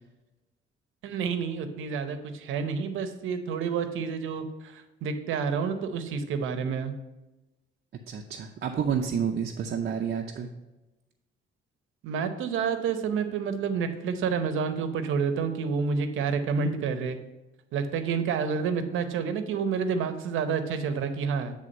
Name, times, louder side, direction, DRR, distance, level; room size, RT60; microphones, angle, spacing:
voice 1, 1.0-7.0 12.0-17.2 17.7-21.5, right 6 dB, 85° right, 9 dB, 0.8 m, -29 dB
voice 2, 8.1-10.5, right 7 dB, 55° right, 1 dB, 0.7 m, -29 dB
9.2 x 3.5 x 5.3 m, 1.0 s
cardioid pair, 90°, 20 cm